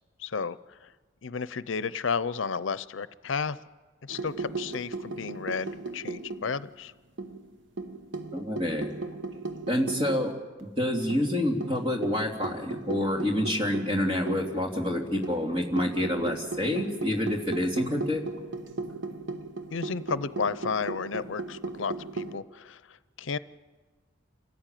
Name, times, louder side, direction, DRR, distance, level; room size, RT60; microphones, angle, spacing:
voice 1, 0.2-0.9 1.2-3.6 4.0-6.9 19.7-23.4, left 5 dB, 80° left, 16 dB, 0.6 m, -32 dB
sound 1, 4.1-6.8 7.2-10.3 10.6-10.7 11.1-14.6 15.2-22.4, right 3 dB, 75° right, 1.2 m, -37 dB
voice 2, 8.3-8.9 9.7-10.3 10.6-18.2, left 1 dB, 30° right, 1 dB, 3.1 m, -28 dB
28.0 x 15.0 x 9.2 m, 1.3 s
head